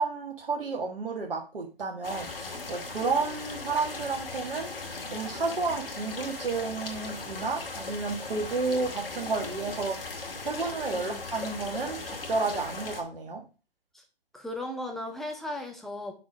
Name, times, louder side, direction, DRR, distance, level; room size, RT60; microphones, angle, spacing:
voice 1, 0.0-13.4, right 4 dB, 70° right, 2 dB, 1.5 m, -31 dB
sound 1, 2.0-13.0, left 3 dB, 70° left, 2.1 m, -38 dB
voice 2, 10.9-11.3 13.9-14.0 14.3-16.1, left 1 dB, ahead, 2 dB, 0.4 m, -36 dB
5.9 x 4.8 x 6.3 m, 0.33 s
figure-of-eight pair, 125°, 29 cm